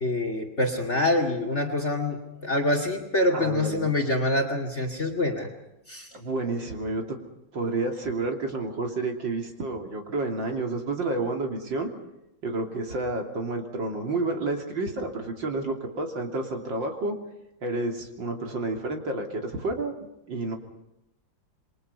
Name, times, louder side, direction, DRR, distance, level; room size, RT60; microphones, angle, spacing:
voice 1, 0.0-5.5 5.9-6.1, left 1 dB, 35° left, 6 dB, 2.5 m, -26 dB
voice 2, 3.3-3.9 6.1-7.2 7.5-11.9 12.4-17.2 17.6-20.6, right 2 dB, 65° right, 3 dB, 3.7 m, -30 dB
28.5 x 23.0 x 5.5 m, 0.88 s
omnidirectional pair, 2.2 m